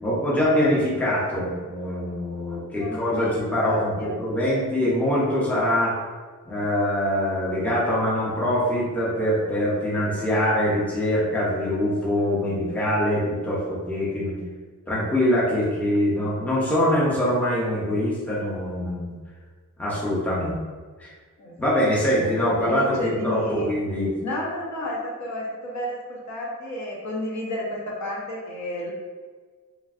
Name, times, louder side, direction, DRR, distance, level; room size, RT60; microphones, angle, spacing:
voice 1, 0.0-6.0 6.5-14.4 14.9-19.1 19.8-20.6 21.0-21.1 21.6-24.1, equal, 5° left, -7 dB, 0.6 m, -24 dB
voice 2, 2.8-4.2 21.4-21.6 22.1-23.7 24.2-28.9, left 1 dB, 60° left, -4 dB, 0.8 m, -31 dB
3.2 x 2.5 x 2.4 m, 1.5 s
wide cardioid pair, 145°, 32 cm